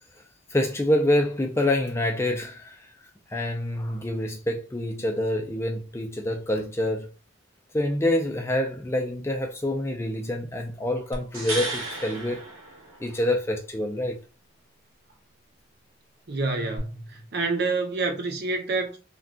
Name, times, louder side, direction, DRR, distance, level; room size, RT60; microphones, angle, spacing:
voice 1, 0.5-2.8 3.3-7.1 7.7-12.4 13.0-14.2, left 1 dB, 10° left, 0.3 m, -26 dB
sound 1, 11.1-13.4 16.8-16.9, right 2 dB, 75° right, 1.0 m, -34 dB
voice 2, 16.3-19.0, right 3 dB, 50° right, 0.6 m, -28 dB
2.3 x 2.2 x 3.6 m
head